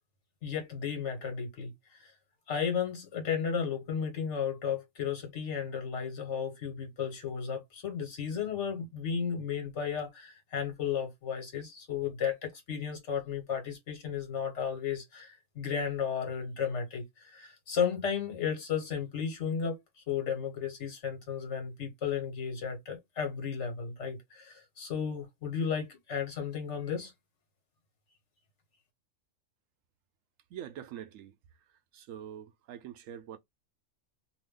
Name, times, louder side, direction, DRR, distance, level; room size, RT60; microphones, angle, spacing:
voice 1, 0.4-2.1 2.5-19.8 20.1-27.1, left 7 dB, 65° left, 1.5 m, -34 dB
voice 2, 30.5-31.3 31.9-33.4, right 10 dB, 85° right, 1.0 m, -44 dB
2.6 x 2.5 x 3.6 m
omnidirectional pair, 1.3 m